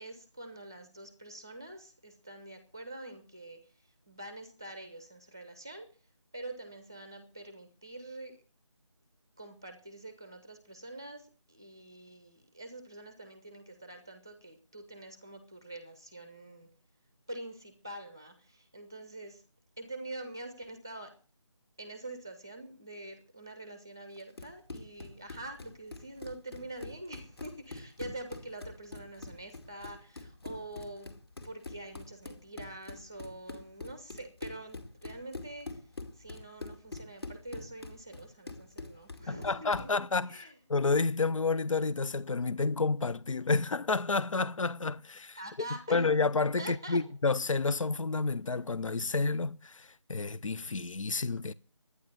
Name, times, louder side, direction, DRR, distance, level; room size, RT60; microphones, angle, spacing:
voice 1, 0.0-3.6 4.1-5.9 6.3-8.4 9.4-16.7 17.3-19.4 19.8-21.1 21.8-31.1 31.4-35.8 36.2-39.9 40.3-40.6 45.4-46.0 46.6-47.0, right 2 dB, 5° right, 0.6 m, -45 dB
Run, 24.2-40.0, left 3 dB, 50° left, 2.3 m, -45 dB
voice 2, 39.3-45.4 45.9-51.5, left 4 dB, 80° left, 0.7 m, -30 dB
11.5 x 9.5 x 7.6 m
figure-of-eight pair, 175°, 16 cm